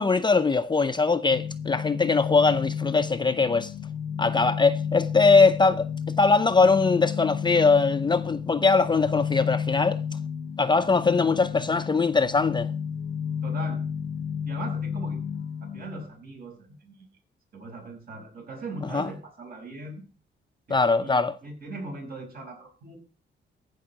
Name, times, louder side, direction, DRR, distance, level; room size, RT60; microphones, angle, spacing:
voice 1, 0.0-3.7 4.2-5.9 6.2-10.0 10.6-12.7 18.9-19.1 20.7-21.3, left 4 dB, 25° left, 0.6 m, -21 dB
sound 1, 1.3-16.0, left 7 dB, 75° left, 0.8 m, -32 dB
voice 2, 13.4-13.8 14.4-15.2 15.6-16.9 17.5-20.0 20.7-23.0, right 2 dB, 55° right, 5.6 m, -39 dB
15.5 x 5.5 x 6.0 m
cardioid pair, 120°, 19 cm